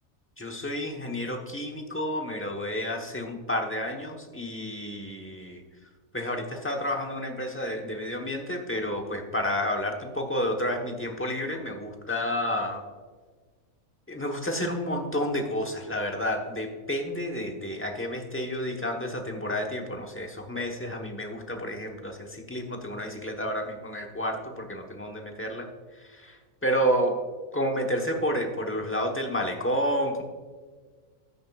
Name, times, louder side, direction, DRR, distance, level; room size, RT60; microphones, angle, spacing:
voice 1, 0.4-5.6 6.1-12.8 14.1-25.7 26.0-26.4 26.6-27.2 27.5-30.2, equal, 10° left, 2 dB, 1.0 m, -30 dB
13.5 x 9.4 x 2.4 m, 1.5 s
omnidirectional pair, 1.4 m